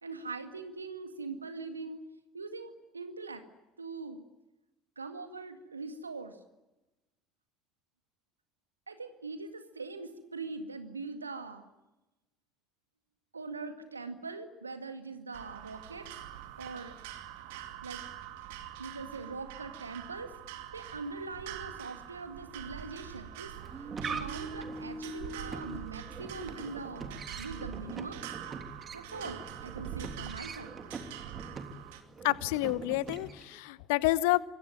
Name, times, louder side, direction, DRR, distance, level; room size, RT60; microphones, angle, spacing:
voice 1, 0.0-2.0 2.3-3.4 3.8-4.2 5.0-6.4 8.9-11.7 13.3-16.1 16.6-17.0 17.8-18.0 18.8-20.3 20.7-23.5 24.0-28.2 28.9-30.7, right 3 dB, 80° right, 9 dB, 2.0 m, -42 dB
sound 1, 15.3-32.0, right 10 dB, 65° right, 2.4 m, -45 dB
sound 2, 23.6-33.6, right 4 dB, 30° right, 3.3 m, -43 dB
voice 2, 32.2-34.4, left 19 dB, 65° left, 20 dB, 0.9 m, -29 dB
26.0 x 22.0 x 9.1 m, 1.0 s
figure-of-eight pair, 60°, 0 cm